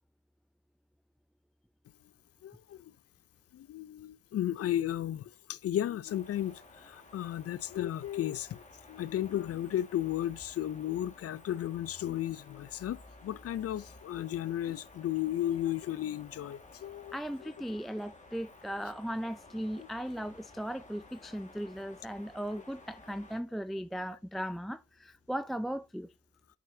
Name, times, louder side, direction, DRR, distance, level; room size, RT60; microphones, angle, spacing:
voice 1, 2.4-2.9 3.5-8.6 8.9-17.5 19.8-19.9 20.2-20.3, left 12 dB, 50° left, 0.5 m, -34 dB
sound 1, 6.0-23.4, left 2 dB, 25° left, 1.9 m, -54 dB
voice 2, 17.1-26.1, equal, ahead, 0.4 m, -37 dB
9.1 x 6.1 x 2.8 m
cardioid pair, 90°, 30 cm